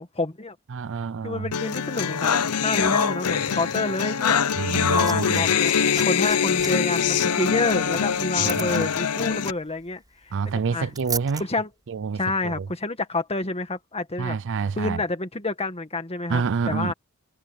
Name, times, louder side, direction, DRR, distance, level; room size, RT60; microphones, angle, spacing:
voice 1, 0.0-0.6 1.2-4.4 4.9-10.9 11.4-11.7 12.2-14.4 14.8-16.9, left 2 dB, 25° left, 1.9 m, -28 dB
voice 2, 0.7-1.5 4.6-5.5 8.4-8.8 10.3-11.4 11.9-12.2 12.4-12.6 14.2-15.0 16.3-16.9, right 5 dB, 55° right, 0.5 m, -27 dB
sound 1, 1.5-9.5, left 7 dB, 85° left, 0.7 m, -23 dB
Liquid, 4.5-11.4 12.5-12.6, right 5 dB, 15° right, 5.8 m, -38 dB
head